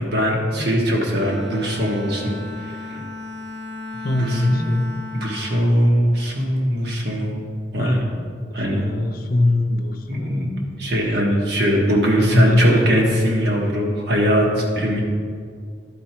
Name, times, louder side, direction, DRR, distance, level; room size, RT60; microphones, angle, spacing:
voice 1, 0.0-2.3 2.6-3.0 4.2-4.7 5.1-7.4 7.7-8.0 8.5-8.8 10.1-10.5 10.8-15.0, equal, 65° right, -1 dB, 1.5 m, -21 dB
Bowed string instrument, 1.1-6.6, left 2 dB, 35° right, 0.9 m, -35 dB
voice 2, 3.9-4.9 7.8-8.0 8.5-10.8 12.2-12.9 14.5-14.7, left 2 dB, 55° left, 5 dB, 0.7 m, -22 dB
11.0 x 4.7 x 4.5 m, 2.1 s
head